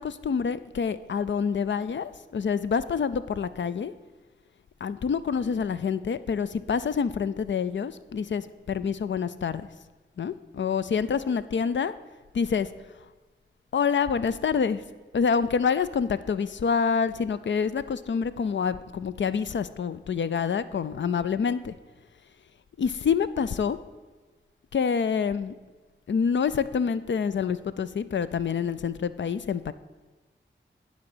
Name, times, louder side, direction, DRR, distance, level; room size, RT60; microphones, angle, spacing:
voice 1, 0.0-3.9 4.8-9.7 10.2-11.9 12.3-12.7 13.7-14.8 15.1-21.7 22.8-23.8 24.7-25.5 26.1-29.7, left 6 dB, 65° left, 14 dB, 0.5 m, -27 dB
9.5 x 4.1 x 7.2 m, 1.3 s
cardioid pair, 50°, 20 cm